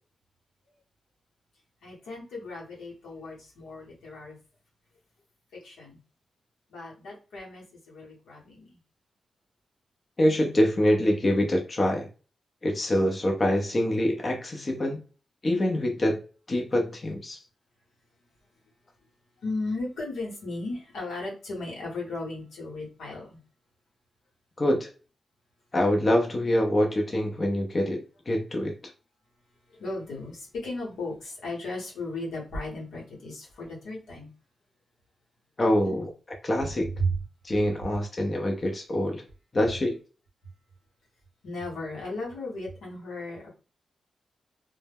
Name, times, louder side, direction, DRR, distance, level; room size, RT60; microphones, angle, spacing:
voice 1, 1.8-4.4 5.6-6.0 6.7-8.8 19.4-23.4 29.8-34.3 35.9-36.0 37.0-37.1 41.4-43.5, left 1 dB, 90° left, -4 dB, 1.0 m, -35 dB
voice 2, 10.2-12.1 12.6-15.0 15.4-16.2 16.5-17.4 24.6-24.9 25.7-28.7 35.6-36.1 36.4-36.9 37.4-39.2 39.5-40.0, left 1 dB, 40° left, 2 dB, 0.5 m, -25 dB
2.1 x 2.1 x 3.4 m, 0.36 s
supercardioid pair, 45°, 0 cm